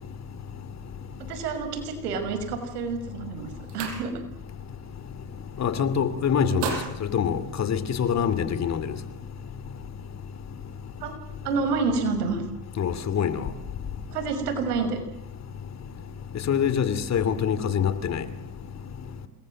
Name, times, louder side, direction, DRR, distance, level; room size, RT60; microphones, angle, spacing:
voice 1, 1.3-4.1 11.0-11.1 11.4-12.4 14.1-15.0, right 4 dB, 85° right, 5.9 m, -28 dB
sound 1, 2.8-3.0 3.3-4.5 4.9-5.1 5.4-6.0 6.3-8.2, right 7 dB, 65° right, 5.9 m, -37 dB
voice 2, 5.6-8.9 12.8-13.5 16.5-18.2, left 7 dB, 35° left, 2.6 m, -25 dB
28.0 x 22.0 x 7.7 m
supercardioid pair, 95°, 46 cm